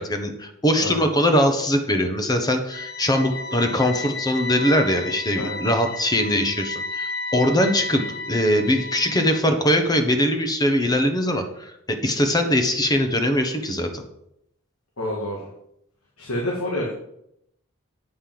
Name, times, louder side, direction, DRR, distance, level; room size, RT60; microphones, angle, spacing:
voice 1, 0.0-14.0, equal, 20° left, 6 dB, 1.1 m, -21 dB
sound 1, 2.7-9.4, left 3 dB, 55° left, 0.8 m, -33 dB
voice 2, 15.0-15.5 16.2-16.9, left 1 dB, 85° left, -3 dB, 2.2 m, -28 dB
8.6 x 5.5 x 7.7 m, 0.78 s
head